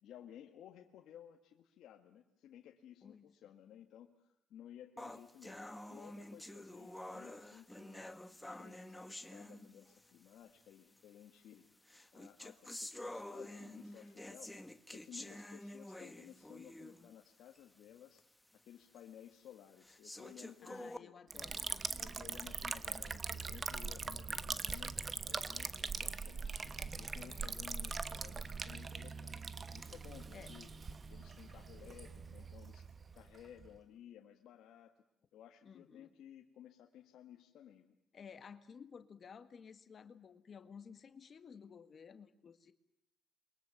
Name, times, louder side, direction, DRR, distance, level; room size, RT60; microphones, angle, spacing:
voice 1, 0.0-8.1 8.4-11.8 12.1-14.6 14.9-18.3 18.6-21.1 21.9-26.6 27.0-29.4 29.7-30.7 31.1-34.9 35.3-37.9, left 10 dB, 80° left, 3 dB, 1.7 m, -57 dB
voice 2, 3.0-3.3 20.6-21.6 26.6-27.5 30.3-30.5 35.6-36.1 38.1-42.7, left 6 dB, 50° left, 9 dB, 1.6 m, -55 dB
sound 1, 5.0-10.1 11.0-11.1 11.9-17.1 17.5-17.6 18.2-18.3 19.0-19.1 19.8-21.0, left 1 dB, 10° left, 1.7 m, -49 dB
Liquid, 21.3-33.8, right 4 dB, 35° right, 1.1 m, -42 dB
28.5 x 23.0 x 7.2 m, 0.79 s
cardioid pair, 90°, 0 cm